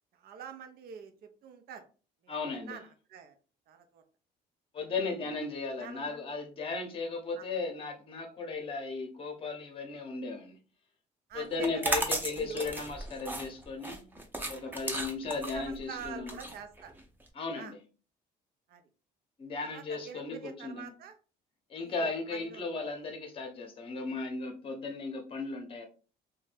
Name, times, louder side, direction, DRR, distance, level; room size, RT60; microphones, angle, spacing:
voice 1, 0.1-1.8 2.2-3.3 3.7-4.0 4.8-5.1 5.8-6.0 7.4-7.5 11.3-12.0 12.3-12.8 14.9-16.9 17.5-17.7 18.7-18.8 19.7-21.2 21.8-22.6, right 7 dB, 65° right, 0.6 m, -46 dB
voice 2, 2.3-2.8 4.7-10.6 11.3-14.0 14.5-16.4 17.3-17.8 19.4-20.9 21.7-25.9, left 4 dB, 35° left, 0.8 m, -36 dB
sound 1, 11.5-17.3, right 2 dB, 10° right, 0.6 m, -35 dB
2.6 x 2.2 x 3.3 m
cardioid pair, 110°, 17 cm